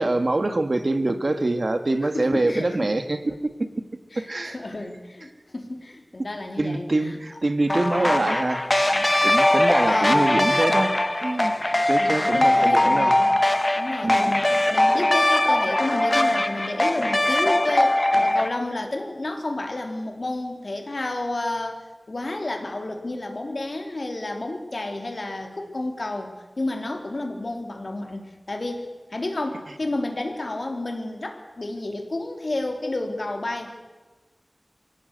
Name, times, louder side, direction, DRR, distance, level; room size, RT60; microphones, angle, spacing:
voice 1, 0.0-3.4 4.2-4.6 6.6-11.0 11.2-11.6 11.9-13.1 14.0-14.4, right 2 dB, 65° right, 8 dB, 1.8 m, -25 dB
voice 2, 2.0-2.6 4.1-7.2 7.7-7.8 9.5-9.6 9.9-10.3 12.0-13.4 13.8-21.8 22.1-33.7, left 2 dB, 70° left, 3 dB, 3.3 m, -31 dB
sound 1, 7.7-18.5, left 1 dB, 30° left, 1.2 m, -21 dB
24.5 x 17.0 x 8.2 m, 1.3 s
wide cardioid pair, 60°, 0 cm